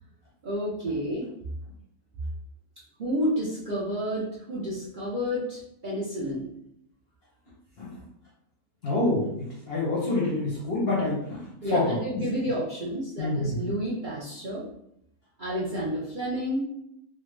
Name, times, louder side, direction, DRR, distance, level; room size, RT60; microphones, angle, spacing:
voice 1, 0.4-1.3 3.0-6.5 11.6-14.6 15.4-16.7, equal, 45° right, -8 dB, 0.7 m, -30 dB
voice 2, 8.8-11.4 11.7-11.9 13.2-13.7, left 2 dB, 50° left, -5 dB, 0.8 m, -27 dB
3.2 x 2.0 x 3.2 m, 0.76 s
omnidirectional pair, 1.6 m